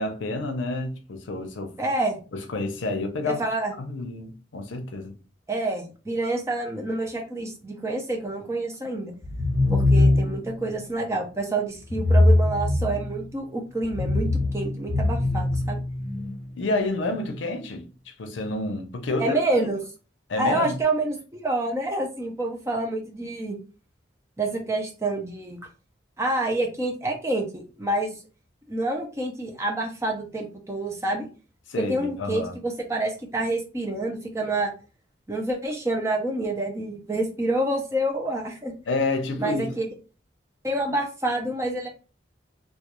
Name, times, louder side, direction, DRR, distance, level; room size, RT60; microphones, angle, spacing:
voice 1, 0.0-1.8 2.3-3.4 3.8-5.1 16.6-19.7 20.3-20.7 31.7-32.5 38.9-39.7, left 2 dB, 85° left, 0.5 m, -29 dB
voice 2, 1.8-2.2 3.3-3.7 5.5-9.1 9.7-15.8 19.2-19.8 20.4-23.6 24.4-25.6 26.2-28.1 28.7-31.3 31.8-34.7 35.3-38.7 39.4-39.9 40.6-41.9, right 2 dB, 15° right, 0.4 m, -28 dB
sound 1, 9.2-10.5 11.9-13.3 13.8-16.3, left 2 dB, 45° right, 1.1 m, -22 dB
2.3 x 2.2 x 2.9 m
head